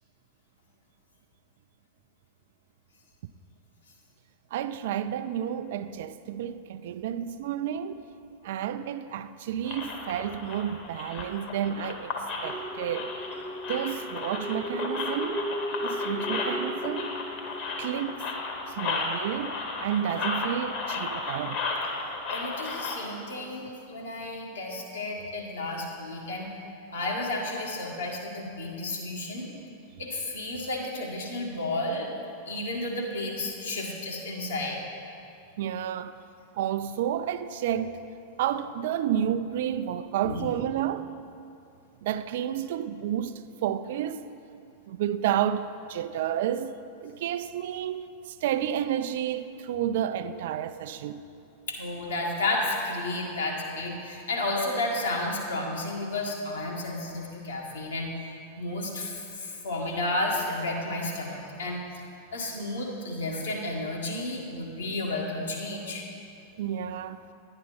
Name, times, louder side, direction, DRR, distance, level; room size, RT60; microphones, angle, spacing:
voice 1, 4.5-8.0 8.4-12.2 12.4-13.1 13.7-15.5 15.8-17.1 17.8-18.3 18.8-21.6 35.6-36.2 36.5-38.0 38.4-41.1 42.0-43.3 43.6-44.3 44.9-46.7 47.0-51.2 66.6-67.2, right 10 dB, 55° right, 0.3 m, -30 dB
sound 1, 9.6-23.0, left 3 dB, 40° left, 1.3 m, -34 dB
sound 2, 12.4-18.9, equal, ahead, 0.6 m, -36 dB
voice 2, 22.3-26.5 26.9-29.5 30.0-32.1 32.5-34.8 40.2-40.5 51.7-58.1 58.6-61.8 62.3-66.0, left 2 dB, 65° left, 1.8 m, -32 dB
11.0 x 9.7 x 4.0 m
figure-of-eight pair, 90°, 0 cm